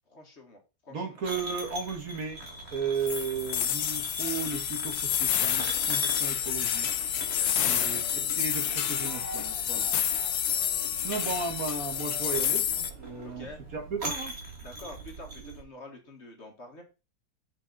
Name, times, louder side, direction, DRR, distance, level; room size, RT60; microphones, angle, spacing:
voice 1, 0.1-1.2 7.4-8.0 13.2-13.6 14.6-16.8, left 2 dB, 45° left, 1.9 m, -47 dB
voice 2, 0.9-2.4 2.7-6.9 7.6-9.9 11.0-12.7 13.0-14.4, right 5 dB, 60° right, 1.9 m, -35 dB
sound 1, 1.2-15.6, right 2 dB, 40° right, 2.4 m, -42 dB
sound 2, 3.1-12.9, left 10 dB, 80° left, 1.2 m, -29 dB
sound 3, 6.7-13.4, equal, 25° right, 2.9 m, -47 dB
8.2 x 6.0 x 4.0 m
omnidirectional pair, 1.7 m